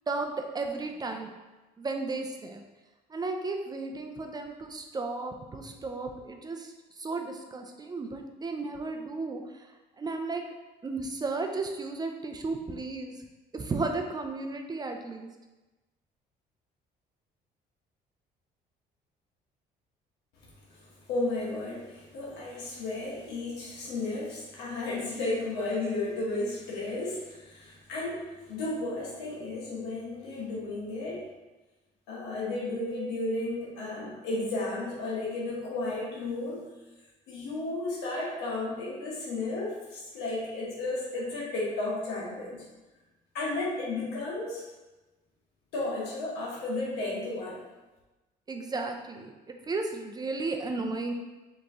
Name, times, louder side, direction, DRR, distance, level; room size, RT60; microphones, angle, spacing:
voice 1, 0.1-1.3 1.8-2.6 3.1-9.7 10.0-10.4 10.8-13.2 13.5-15.3 48.5-51.1, right 3 dB, 25° right, 4 dB, 0.5 m, -34 dB
voice 2, 20.7-31.3 32.1-36.6 37.3-42.6 43.3-44.6 45.7-47.6, left 2 dB, 90° left, -5 dB, 1.2 m, -33 dB
4.9 x 3.0 x 3.6 m, 1.1 s
cardioid pair, 110°, 17 cm